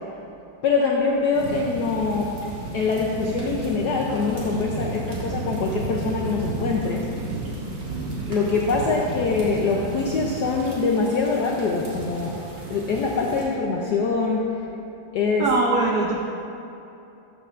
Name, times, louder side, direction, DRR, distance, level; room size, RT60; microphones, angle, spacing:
voice 1, 0.6-2.3 2.7-7.1 8.3-12.4 12.7-14.5 15.1-15.5, left 4 dB, 75° left, -1 dB, 0.9 m, -24 dB
sound 1, 1.3-13.4, right 3 dB, 55° right, 2.0 m, -33 dB
voice 2, 15.4-16.1, right 3 dB, 80° right, -1 dB, 0.8 m, -21 dB
12.5 x 6.7 x 2.4 m, 2.8 s
omnidirectional pair, 2.4 m